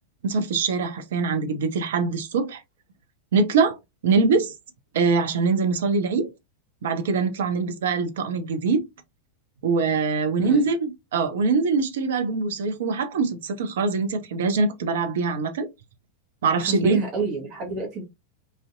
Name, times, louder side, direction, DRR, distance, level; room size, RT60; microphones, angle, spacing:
voice 1, 0.2-2.6 3.3-3.8 4.0-4.5 4.9-6.3 6.8-8.8 9.6-15.7 16.4-17.0, right 4 dB, 60° right, 0.5 m, -23 dB
voice 2, 16.5-18.0, right 4 dB, 35° right, 0.8 m, -29 dB
2.5 x 2.0 x 2.5 m
figure-of-eight pair, 90°, 0 cm